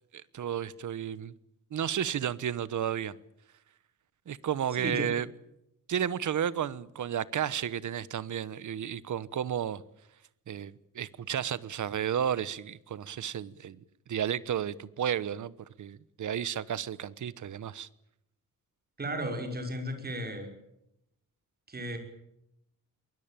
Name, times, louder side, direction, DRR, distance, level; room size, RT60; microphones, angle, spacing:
voice 1, 0.1-1.3 1.7-3.1 4.3-5.3 5.9-9.8 10.5-13.8 14.1-17.9, right 9 dB, 65° right, 1.1 m, -32 dB
voice 2, 19.0-20.5 21.7-22.0, equal, 30° right, 5.3 m, -34 dB
23.0 x 20.5 x 9.0 m
wide cardioid pair, 175°, 33 cm